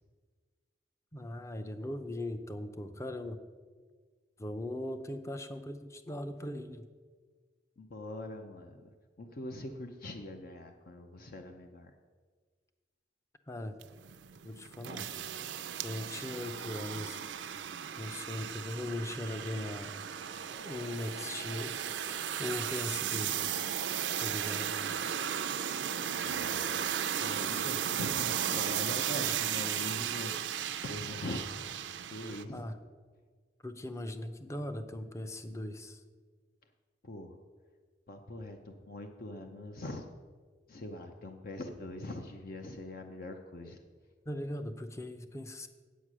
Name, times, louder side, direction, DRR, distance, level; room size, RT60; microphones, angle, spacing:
voice 1, 1.1-3.4 4.4-6.9 13.5-13.8 14.4-15.1 15.8-17.2 18.0-19.9 20.6-21.8 22.4-23.7 24.2-24.7 32.5-32.7 33.6-36.0 44.3-45.7, left 1 dB, 15° left, 9 dB, 0.6 m, -39 dB
voice 2, 7.8-11.9 14.9-15.1 26.2-26.8 27.1-32.7 37.0-37.4 38.1-40.1 40.7-43.8, left 1 dB, 55° left, 4 dB, 0.7 m, -43 dB
sound 1, 13.8-32.4, right 9 dB, 80° right, 0.5 m, -35 dB
8.3 x 8.2 x 6.2 m, 1.5 s
head